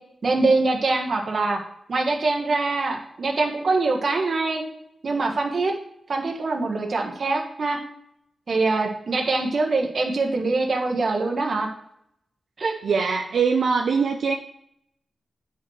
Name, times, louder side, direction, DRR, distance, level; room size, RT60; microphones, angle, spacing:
voice 1, 0.2-1.6 1.9-4.6 5.0-5.7 6.1-7.8 8.5-11.7 12.6-13.1, right 3 dB, 50° right, 2 dB, 1.3 m, -24 dB
voice 2, 12.8-14.4, right 5 dB, 75° right, 2 dB, 0.6 m, -22 dB
9.8 x 5.4 x 3.2 m, 0.72 s
wide cardioid pair, 145°, 0 cm